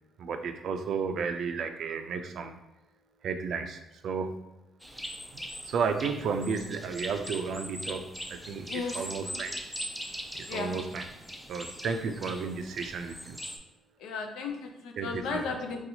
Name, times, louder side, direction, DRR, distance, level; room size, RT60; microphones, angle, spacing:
voice 1, 0.2-2.5 3.2-4.3 5.3-9.6 10.3-11.0 11.5-13.4 15.0-15.5, right 5 dB, 70° right, 7 dB, 0.3 m, -33 dB
sound 1, 4.8-13.6, equal, ahead, 0.4 m, -41 dB
voice 2, 8.7-9.4 10.5-10.7 14.0-15.8, left 4 dB, 85° left, 3 dB, 0.5 m, -35 dB
4.1 x 2.4 x 2.7 m, 0.90 s
cardioid pair, 90°, 0 cm